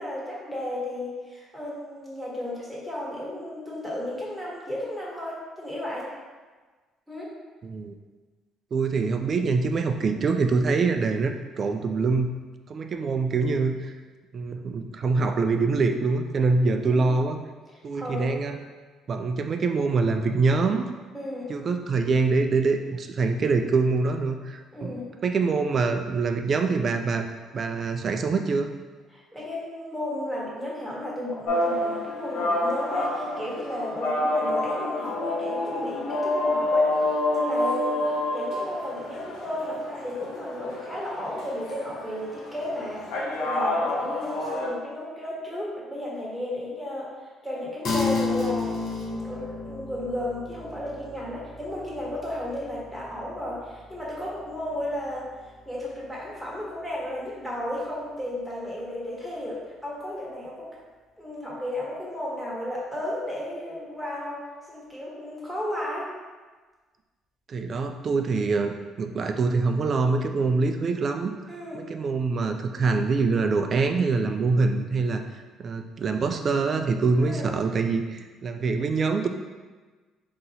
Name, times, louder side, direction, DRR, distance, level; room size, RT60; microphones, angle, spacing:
voice 1, 0.0-6.1 7.1-7.3 16.8-17.1 18.0-18.3 21.1-21.5 24.7-25.1 29.1-36.9 37.3-38.1 38.3-47.1 47.4-55.3 55.6-60.7 61.2-64.4 64.7-66.1 71.5-71.8 77.2-77.5, left 1 dB, ahead, -6 dB, 1.2 m, -34 dB
voice 2, 7.6-7.9 8.7-12.3 12.7-13.9 14.3-17.4 17.8-18.6 19.1-20.8 21.5-27.3 27.5-28.7 67.5-71.3 71.7-79.3, right 4 dB, 35° right, 6 dB, 0.3 m, -25 dB
sound 1, 31.5-44.7, left 1 dB, 80° left, 1.0 m, -28 dB
sound 2, 47.8-57.6, left 4 dB, 50° left, 0.8 m, -34 dB
3.9 x 2.9 x 4.1 m, 1.3 s
cardioid pair, 140°, 0 cm